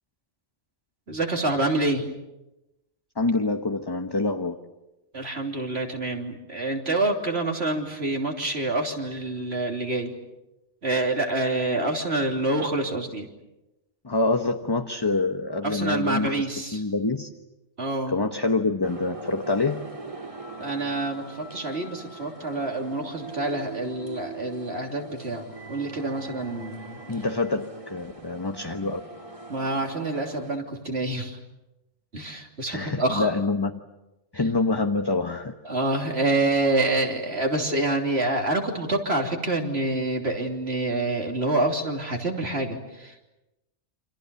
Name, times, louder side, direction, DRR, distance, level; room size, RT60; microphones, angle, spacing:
voice 1, 1.1-2.1 5.1-10.1 10.8-13.3 15.6-16.8 17.8-18.1 20.6-27.0 29.5-31.4 32.1-33.3 35.7-43.3, right 2 dB, 65° right, 2 dB, 3.6 m, -27 dB
voice 2, 3.2-4.6 14.0-16.4 16.7-17.3 18.1-19.8 27.1-29.0 32.7-33.7 34.3-35.5, left 3 dB, 20° left, 5 dB, 1.0 m, -26 dB
sound 1, 18.8-30.6, right 3 dB, 30° right, 2.4 m, -41 dB
28.5 x 26.5 x 7.1 m, 0.98 s
omnidirectional pair, 1.2 m